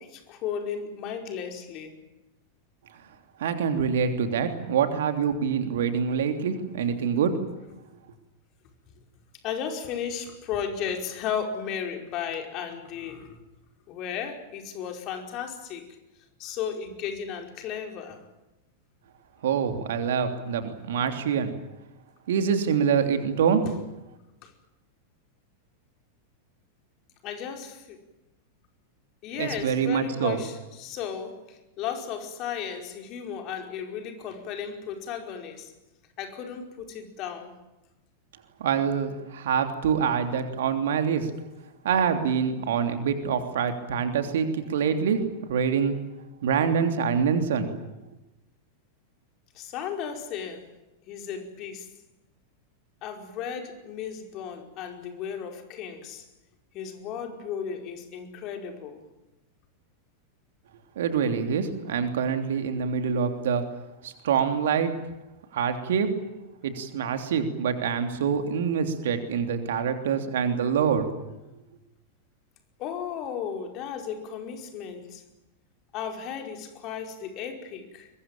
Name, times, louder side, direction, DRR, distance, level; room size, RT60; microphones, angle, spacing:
voice 1, 0.0-2.0 9.4-13.4 13.9-15.9 16.4-18.2 23.6-23.7 24.4-24.5 27.2-28.0 29.2-35.7 36.2-37.5 49.5-50.7 51.1-51.9 53.0-56.2 56.7-59.0 72.8-75.2 75.9-78.1, left 7 dB, 40° left, 4 dB, 5.0 m, -35 dB
voice 2, 3.4-7.3 19.4-21.5 22.3-23.6 29.3-30.4 38.6-41.3 41.8-45.2 45.5-46.0 46.4-47.8 61.0-63.6 64.0-64.9 65.5-66.1 66.6-71.1, right 7 dB, 60° right, 7 dB, 3.1 m, -25 dB
23.5 x 22.5 x 8.9 m, 0.97 s
figure-of-eight pair, 90°, 0 cm